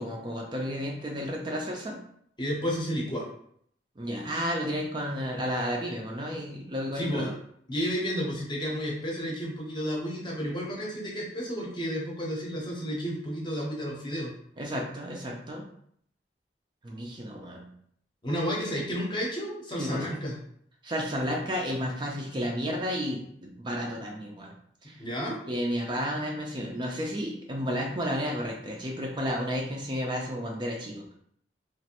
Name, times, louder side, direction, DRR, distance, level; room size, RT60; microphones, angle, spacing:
voice 1, 0.0-2.0 4.0-7.3 14.6-15.6 16.8-17.7 19.8-20.2 20.8-24.5 24.8-25.0 25.5-31.1, equal, 25° right, -1 dB, 0.4 m, -32 dB
voice 2, 2.4-3.2 6.9-7.3 7.7-14.3 18.2-20.3 25.0-25.4, equal, 25° left, -2 dB, 0.7 m, -31 dB
3.0 x 2.5 x 2.8 m, 0.66 s
head